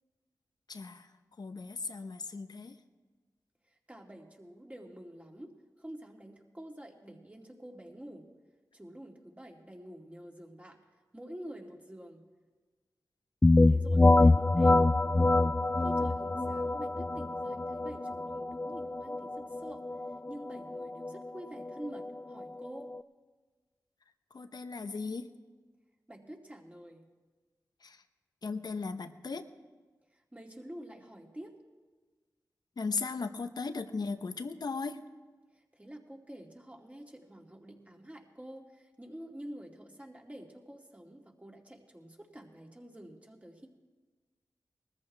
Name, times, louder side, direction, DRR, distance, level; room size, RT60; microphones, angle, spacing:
voice 1, 0.7-1.1 1.4-2.7 24.3-25.3 27.8-28.0 28.4-29.4 32.8-35.0, left 4 dB, 65° left, 9 dB, 0.9 m, -37 dB
voice 2, 3.7-8.3 8.7-10.8 11.1-12.2 13.6-14.8 15.8-19.8 20.3-22.9 26.1-27.1 30.1-31.5 35.5-43.7, right 1 dB, 20° right, 0 dB, 2.5 m, -48 dB
sound 1, 13.4-23.0, left 2 dB, 25° left, 0.4 m, -26 dB
20.0 x 14.0 x 3.4 m, 1.3 s
cardioid pair, 40°, 8 cm